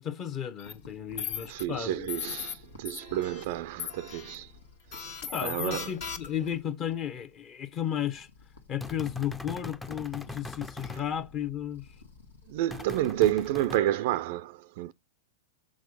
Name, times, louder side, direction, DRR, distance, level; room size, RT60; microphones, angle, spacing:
voice 1, 0.0-2.1 5.2-8.3 8.7-11.9, left 9 dB, 35° left, 1.0 m, -34 dB
sound 1, 0.6-13.4, left 3 dB, 75° left, 1.5 m, -54 dB
sound 2, 0.6-0.7 1.2-1.6 2.1-2.5 2.9-3.5 3.8-4.4 4.9-6.5, left 8 dB, 55° left, 1.6 m, -37 dB
voice 2, 1.5-4.5 4.9-5.1 5.4-6.0 12.5-14.9, right 13 dB, 55° right, 0.4 m, -30 dB
sound 3, 8.8-11.0 12.7-13.8, left 3 dB, 10° left, 0.6 m, -41 dB
6.4 x 4.4 x 5.3 m
figure-of-eight pair, 100°, 0 cm